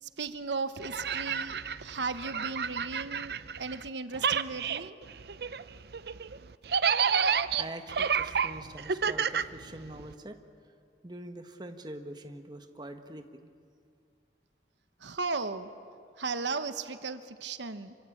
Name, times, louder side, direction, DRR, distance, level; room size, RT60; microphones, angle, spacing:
voice 1, 0.0-5.0 15.0-15.7 16.2-17.9, right 4 dB, 85° right, 10 dB, 1.2 m, -36 dB
sound 1, 0.8-3.9 4.1-10.1, right 7 dB, 60° right, 0.6 m, -30 dB
voice 2, 7.1-10.4 10.6-10.7 11.0-13.5, right 1 dB, 25° right, 6 dB, 1.4 m, -44 dB
26.0 x 24.5 x 8.6 m, 2.3 s
head